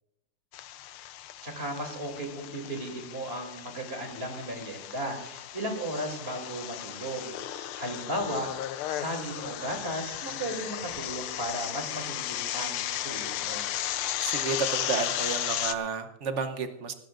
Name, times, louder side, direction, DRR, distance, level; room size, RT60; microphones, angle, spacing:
sound 1, 0.5-15.7, left 12 dB, 80° left, 1.6 m, -35 dB
voice 1, 1.4-8.5 8.9-13.7, right 1 dB, 25° right, 3 dB, 3.1 m, -35 dB
voice 2, 14.2-16.9, right 5 dB, 55° right, 7 dB, 0.8 m, -31 dB
19.0 x 16.5 x 2.5 m, 0.90 s
omnidirectional pair, 2.4 m